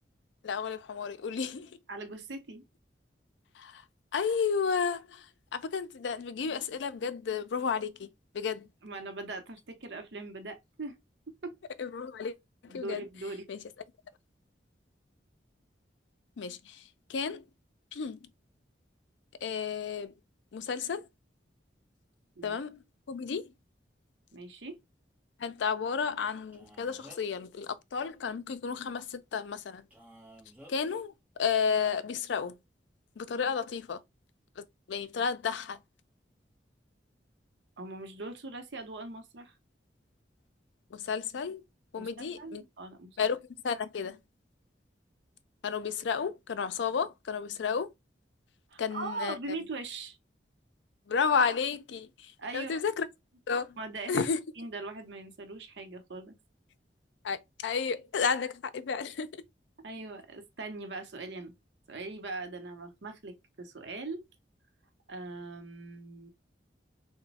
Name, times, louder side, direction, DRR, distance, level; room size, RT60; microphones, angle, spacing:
voice 1, 0.4-1.8 3.6-3.8 4.1-8.7 11.8-12.3 12.6-13.0 13.5-13.6 16.4-17.4 17.9-18.2 19.4-20.1 20.5-21.1 22.4-22.8 23.1-23.5 25.4-29.9 30.7-31.1 31.4-32.6 33.2-34.0 34.6-35.8 40.9-41.6 41.9-42.6 43.2-43.4 43.6-44.2 45.6-47.9 48.8-49.4 51.1-53.1 53.5-53.8 54.1-54.4 57.2-59.4, left 6 dB, 80° left, 0.4 m, -32 dB
voice 2, 1.9-2.6 8.8-11.0 11.3-11.6 12.7-13.4 22.4-22.6 24.3-24.8 37.8-39.5 42.0-43.2 48.7-50.2 52.4-52.8 53.8-54.1 54.6-56.4 59.8-61.5 61.9-64.2 65.1-66.3, right 3 dB, 75° right, 0.7 m, -41 dB
Male speech man speaking, 26.5-27.4 29.9-30.7, equal, 10° right, 1.0 m, -53 dB
3.0 x 2.1 x 4.0 m
head